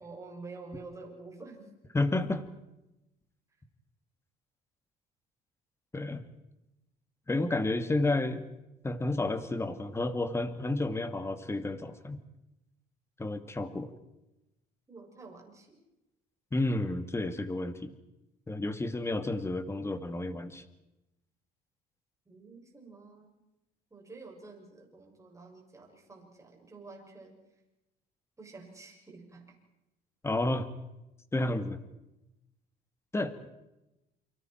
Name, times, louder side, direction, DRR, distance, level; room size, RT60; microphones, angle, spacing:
voice 1, 0.0-1.7 14.9-15.8 22.3-23.4 23.9-27.3 28.4-29.5, right 3 dB, 20° right, 0 dB, 6.9 m, -49 dB
voice 2, 1.9-2.4 5.9-6.2 7.3-8.5 8.8-12.2 13.2-13.9 16.5-17.9 18.5-20.6 30.2-30.7 31.3-31.8 33.1-33.3, left 2 dB, 15° left, 10 dB, 2.2 m, -31 dB
29.0 x 25.0 x 4.6 m, 0.94 s
cardioid pair, 110°, 17 cm